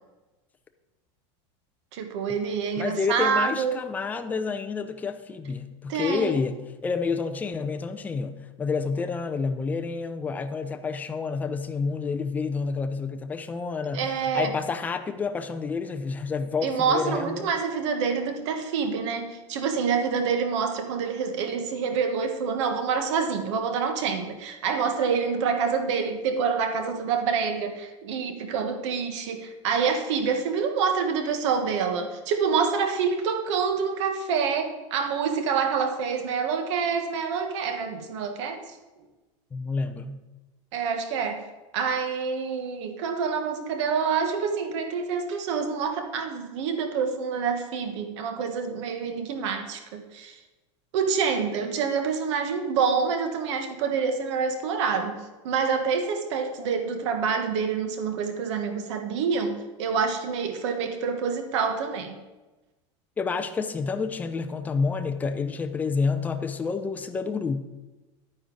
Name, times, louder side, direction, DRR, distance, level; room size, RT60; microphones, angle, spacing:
voice 1, 1.9-3.8 5.9-6.4 13.9-14.5 16.6-38.6 40.7-41.4 41.7-50.4 50.9-55.2 55.4-62.2, right 6 dB, 75° right, 6 dB, 1.3 m, -27 dB
voice 2, 2.8-17.5 39.5-40.2 63.2-67.6, left 4 dB, 10° left, 6 dB, 0.5 m, -29 dB
11.0 x 9.6 x 3.9 m, 1.1 s
supercardioid pair, 170°, 15 cm